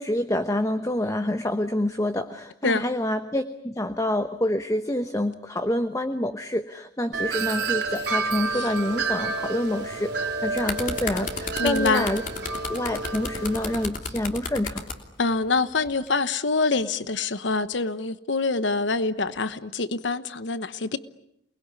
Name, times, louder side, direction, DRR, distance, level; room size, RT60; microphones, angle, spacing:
voice 1, 0.0-12.2 12.7-14.8, left 1 dB, 15° left, 1.1 m, -27 dB
Wind chime, 7.1-13.8, right 4 dB, 65° right, 4.4 m, -30 dB
sound 1, 10.3-15.0 15.9-16.1, left 4 dB, 45° left, 3.2 m, -33 dB
voice 2, 11.6-12.1 15.2-21.0, left 3 dB, 85° left, 1.1 m, -25 dB
28.5 x 21.5 x 9.7 m
head